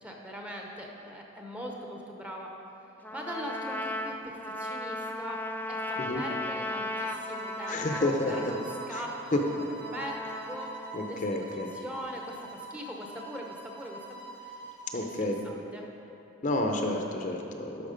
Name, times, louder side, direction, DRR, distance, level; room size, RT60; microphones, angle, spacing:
voice 1, 0.0-2.5 3.1-5.4 5.7-9.1 9.4-9.6 9.9-14.2 14.4-14.5 14.9-15.9, equal, 5° right, 0 dB, 0.8 m, -41 dB
Trumpet, 3.0-11.1, left 1 dB, 10° left, 0.3 m, -37 dB
sound 1, 7.0-15.3, right 3 dB, 50° right, 1.3 m, -44 dB
voice 2, 7.7-8.5 8.9-9.0 9.3-9.4 10.9-11.7 14.9-15.4 16.4-17.9, left 2 dB, 40° left, 2 dB, 0.7 m, -30 dB
12.0 x 5.9 x 5.1 m, 3.0 s
head